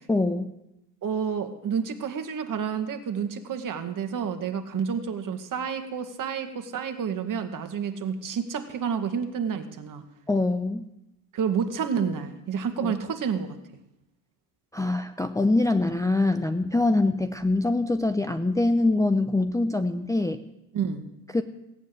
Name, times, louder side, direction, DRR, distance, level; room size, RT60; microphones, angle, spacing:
voice 1, 0.1-0.5 10.3-10.8 12.8-12.9 14.7-20.4 21.3-21.4, left 2 dB, 5° left, 7 dB, 0.7 m, -24 dB
voice 2, 1.0-10.0 11.3-13.6 20.7-21.1, right 7 dB, 40° right, 8 dB, 2.0 m, -29 dB
17.5 x 9.3 x 7.8 m, 0.91 s
hypercardioid pair, 80°, 49 cm